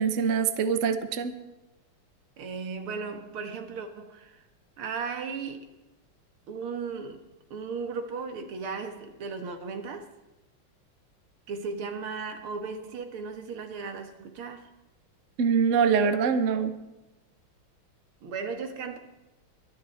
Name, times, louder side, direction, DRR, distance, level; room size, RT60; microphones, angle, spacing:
voice 1, 0.0-1.3 15.4-16.7, right 6 dB, 45° right, 1.1 m, -24 dB
voice 2, 2.4-4.4 4.8-5.7 6.5-7.3 7.5-10.1 11.5-14.7 18.2-19.0, right 5 dB, 85° right, 2.4 m, -36 dB
23.5 x 9.6 x 4.3 m
omnidirectional pair, 2.3 m